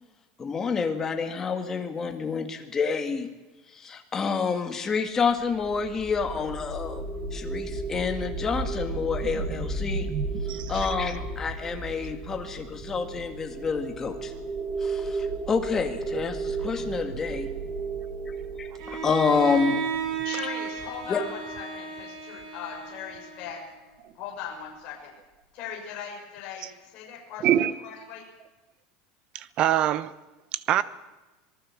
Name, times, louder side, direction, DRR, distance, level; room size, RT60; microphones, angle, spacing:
voice 1, 0.4-3.3 3.7-7.0 7.3-10.1 10.4-14.3 14.8-17.5 18.6-19.8 21.1-21.3, left 5 dB, 15° left, 1.9 m, -28 dB
sound 1, 5.3-20.5, right 3 dB, 10° right, 3.1 m, -34 dB
voice 2, 10.1-10.7 27.4-27.7 29.3-30.1 30.5-30.8, right 11 dB, 30° right, 0.9 m, -24 dB
Bowed string instrument, 18.8-23.8, right 6 dB, 70° right, 7.7 m, -34 dB
voice 3, 20.2-23.6 24.1-25.1 25.5-28.3, left 8 dB, 35° left, 6.4 m, -39 dB
26.5 x 19.0 x 7.5 m
supercardioid pair, 180°, 3 cm